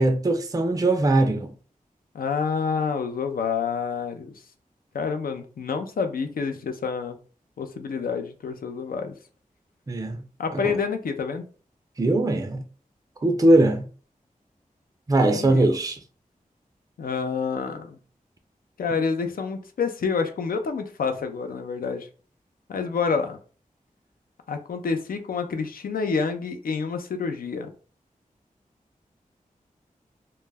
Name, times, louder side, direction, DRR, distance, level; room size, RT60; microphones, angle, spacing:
voice 1, 0.0-1.5 9.9-10.2 10.5-10.7 12.0-12.6 13.2-13.9 15.1-16.0, right 2 dB, 25° right, 0.4 m, -21 dB
voice 2, 2.1-4.3 4.9-7.2 7.6-9.1 10.4-11.4 15.3-15.7 17.0-18.0 18.8-22.1 22.7-23.4 24.5-27.7, left 5 dB, 85° left, 0.4 m, -28 dB
2.2 x 2.0 x 3.2 m
cardioid pair, 45°, 15 cm